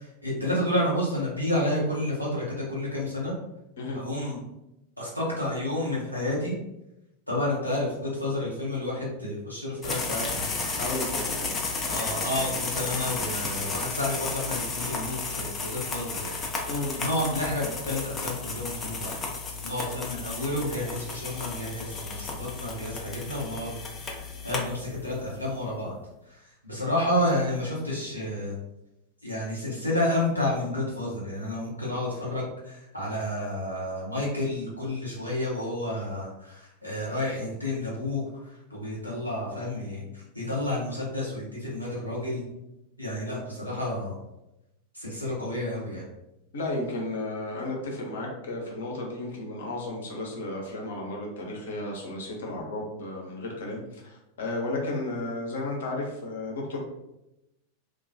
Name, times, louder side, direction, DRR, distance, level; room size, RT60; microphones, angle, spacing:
voice 1, 0.0-3.3 3.9-4.4 5.0-6.6 7.3-10.6 11.8-19.2 19.6-23.7 24.1-25.9 26.3-26.4 26.6-28.5 29.2-38.2 38.7-42.4 43.0-44.2 44.9-46.0, left 1 dB, 90° right, -6 dB, 0.8 m, -30 dB
sound 1, 9.8-25.3, left 3 dB, 20° left, 0.4 m, -33 dB
voice 2, 10.8-11.5 16.7-16.9 46.5-56.8, left 2 dB, 60° left, -1 dB, 0.6 m, -33 dB
2.3 x 2.2 x 2.6 m, 0.90 s
figure-of-eight pair, 90°, 0 cm